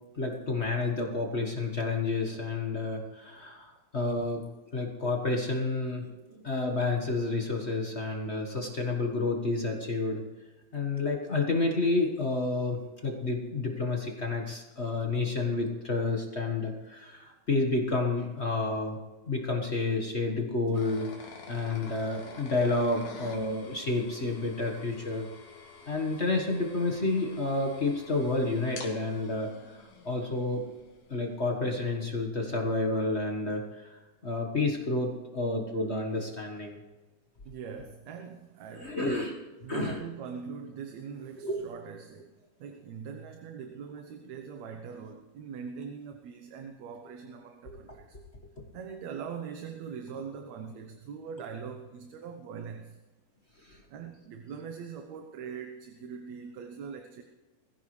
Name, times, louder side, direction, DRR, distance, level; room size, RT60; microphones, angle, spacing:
voice 1, 0.1-4.4 4.7-10.2 10.7-19.0 19.3-21.1 21.5-25.3 25.9-29.8 30.0-30.6 31.1-36.8 38.7-39.4 39.7-40.0 41.4-41.7 47.7-47.8 53.6-53.8, left 3 dB, 45° left, 1 dB, 0.8 m, -30 dB
sound 1, 20.7-31.5, left 4 dB, 70° left, 3.3 m, -49 dB
voice 2, 37.5-39.3 39.6-48.2 48.7-53.0 53.9-57.2, right 6 dB, 70° right, 4 dB, 2.2 m, -42 dB
20.5 x 15.5 x 3.3 m, 1.2 s
omnidirectional pair, 3.6 m